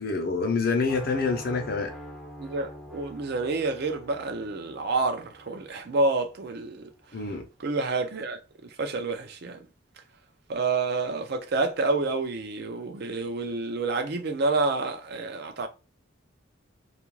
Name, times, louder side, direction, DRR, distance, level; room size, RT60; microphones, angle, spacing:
voice 1, 0.0-1.9 7.1-7.4, left 4 dB, 50° left, 0.6 m, -27 dB
sound 1, 0.9-6.8, equal, ahead, 0.5 m, -45 dB
voice 2, 2.4-6.9 7.6-9.6 10.5-15.7, right 3 dB, 50° right, 0.4 m, -28 dB
2.4 x 2.2 x 3.0 m
head